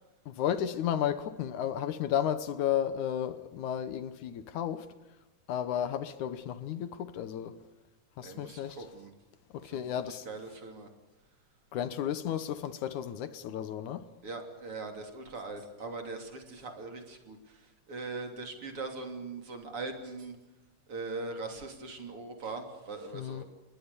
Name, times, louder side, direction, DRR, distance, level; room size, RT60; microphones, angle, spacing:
voice 1, 0.3-4.9 5.5-7.6 8.2-8.8 9.5-10.3 11.7-14.1 23.1-23.4, left 10 dB, 75° left, 2.4 m, -33 dB
voice 2, 8.2-9.1 9.6-9.8 10.1-10.9 14.2-20.4 20.9-23.4, right 3 dB, 45° right, 3.8 m, -41 dB
30.0 x 21.5 x 6.9 m
omnidirectional pair, 3.7 m